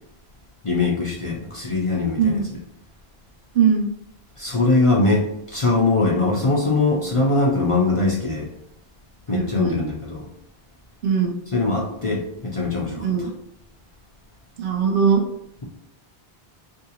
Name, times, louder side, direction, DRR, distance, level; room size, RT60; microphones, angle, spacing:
voice 1, 0.6-2.4 4.4-8.5 9.3-10.3 11.5-13.3, left 3 dB, 40° left, -3 dB, 0.5 m, -21 dB
voice 2, 2.2-2.5 3.5-3.9 9.3-9.8 11.0-11.3 13.0-13.2 14.6-15.2, right 6 dB, 65° right, 1 dB, 0.7 m, -20 dB
3.6 x 2.7 x 2.8 m, 0.78 s
omnidirectional pair, 1.0 m